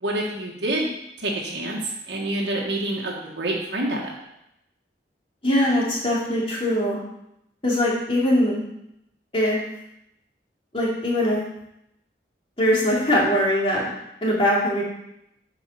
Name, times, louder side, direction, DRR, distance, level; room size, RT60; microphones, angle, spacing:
voice 1, 0.0-0.9 1.2-1.8 2.1-4.1, right 1 dB, 70° right, -2 dB, 1.6 m, -27 dB
voice 2, 5.4-7.0 7.6-8.6 9.3-9.6 10.7-11.4 12.6-13.9 14.2-14.8, left 1 dB, 30° left, -5 dB, 2.7 m, -21 dB
9.5 x 5.6 x 5.7 m, 0.80 s
head